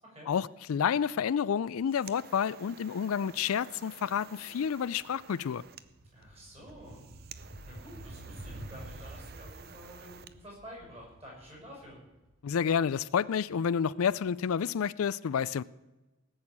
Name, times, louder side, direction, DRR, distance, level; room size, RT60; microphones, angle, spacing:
voice 1, 0.3-5.6 12.4-15.6, left 7 dB, 80° left, 0.4 m, -29 dB
sound 1, 1.6-10.4, right 7 dB, 45° right, 0.6 m, -52 dB
sound 2, 4.1-4.3 4.7-13.6, right 1 dB, 60° right, 1.9 m, -49 dB
voice 2, 6.1-12.0, equal, 30° right, 7.0 m, -50 dB
18.5 x 6.4 x 8.7 m
head